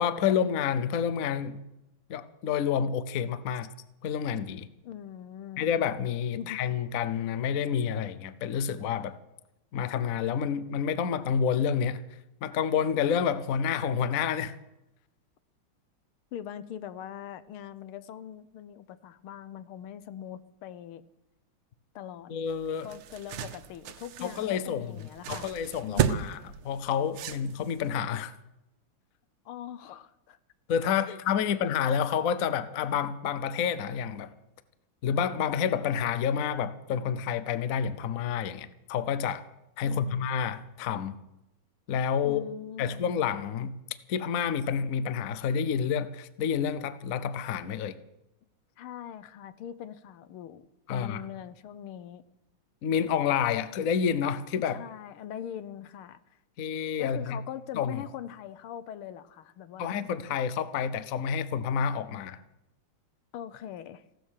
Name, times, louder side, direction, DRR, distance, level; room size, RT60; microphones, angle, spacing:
voice 1, 0.0-1.6 2.1-3.7 4.0-4.7 5.6-9.2 9.7-12.0 12.4-14.5 22.3-22.9 24.2-25.0 25.3-26.4 26.6-28.3 30.7-34.3 35.0-39.4 39.8-41.1 41.9-42.4 42.8-43.8 44.1-48.0 50.9-51.2 52.8-54.8 56.6-57.4 57.7-58.0 59.8-62.4, left 7 dB, 60° left, 14 dB, 0.9 m, -29 dB
voice 2, 4.8-5.6 6.4-6.6 16.3-21.0 22.0-22.3 22.8-25.5 25.8-26.3 29.5-30.4 31.1-31.6 39.8-40.2 42.2-43.0 48.8-52.2 54.7-56.4 57.0-60.0 63.3-64.0, left 10 dB, 80° left, 15 dB, 1.7 m, -42 dB
sound 1, 22.5-27.9, right 9 dB, 80° right, 1.8 m, -34 dB
16.0 x 13.0 x 6.5 m, 0.92 s
omnidirectional pair, 2.3 m